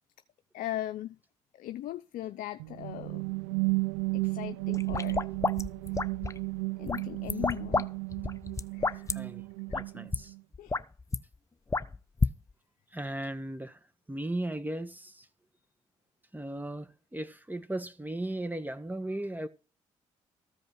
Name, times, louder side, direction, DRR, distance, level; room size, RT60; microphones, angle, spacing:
voice 1, 0.5-1.2 1.5-3.2 4.1-5.3 6.8-7.9 8.7-9.1 10.6-10.8, left 13 dB, 70° left, 0.6 m, -38 dB
sound 1, 2.6-10.4, right 28 dB, 90° right, 0.5 m, -34 dB
sound 2, 4.7-6.4 6.9-9.1 9.7-9.8 10.1-10.2 10.5-11.2 11.7-12.3, left 3 dB, 20° left, 0.8 m, -30 dB
voice 2, 9.1-9.5 9.7-10.3 12.9-13.8 14.1-15.3 16.3-19.5, right 1 dB, 10° right, 1.8 m, -36 dB
14.5 x 5.2 x 6.3 m
hypercardioid pair, 50°, 15 cm